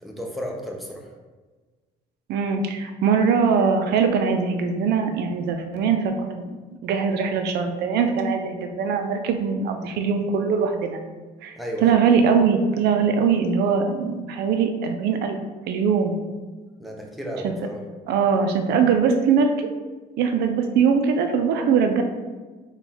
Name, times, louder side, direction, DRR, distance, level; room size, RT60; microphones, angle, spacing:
voice 1, 0.0-1.1 11.6-12.0 16.8-17.8, equal, ahead, 0 dB, 0.6 m, -33 dB
voice 2, 2.3-6.5 6.8-11.0 11.4-11.6 11.8-15.4 15.7-16.2 17.4-17.5 18.1-19.7 20.2-22.0, right 6 dB, 75° right, 5 dB, 0.5 m, -21 dB
3.5 x 2.4 x 4.2 m, 1.3 s
cardioid pair, 110°, 17 cm